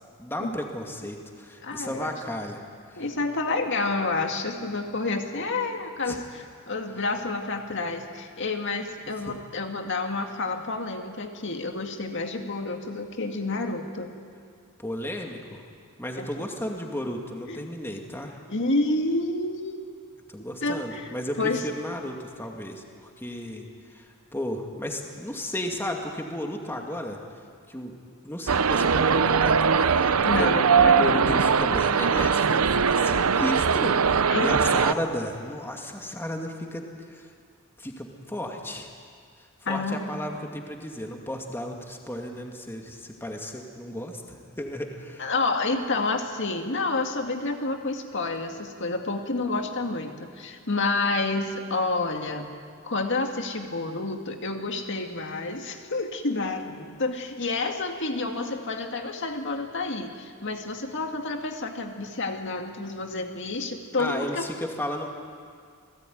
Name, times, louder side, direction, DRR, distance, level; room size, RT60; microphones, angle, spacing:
voice 1, 0.2-2.6 2.9-3.0 6.1-6.2 9.3-9.4 14.8-15.6 16.0-18.4 20.3-23.7 23.9-24.1 24.3-27.2 27.7-28.0 28.2-37.3 37.8-38.9 39.7-45.3 64.0-65.1, left 1 dB, 10° left, 2 dB, 2.3 m, -34 dB
voice 2, 1.6-2.1 3.0-14.1 16.2-16.5 17.5-17.7 18.5-19.9 20.6-21.6 30.2-31.3 34.3-34.6 39.7-40.1 45.2-52.5 52.8-64.5, left 3 dB, 60° left, 4 dB, 2.0 m, -29 dB
sound 1, 28.5-34.9, right 6 dB, 80° right, 0.7 m, -21 dB
27.5 x 19.0 x 9.4 m, 2.1 s
head